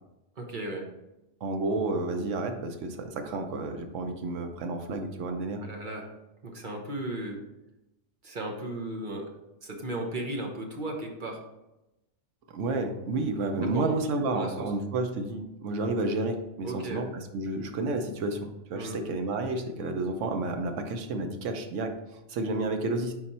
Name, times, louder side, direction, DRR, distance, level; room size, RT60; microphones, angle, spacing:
voice 1, 0.4-0.9 5.6-6.1 6.4-7.4 8.2-9.3 9.6-11.4 13.7-14.0 14.3-14.7 16.6-17.1 18.7-19.0, right 1 dB, 45° right, 1 dB, 1.0 m, -35 dB
voice 2, 1.4-5.6 12.5-23.1, right 2 dB, 90° right, 5 dB, 1.1 m, -31 dB
5.1 x 4.6 x 4.2 m, 0.94 s
omnidirectional pair, 1.2 m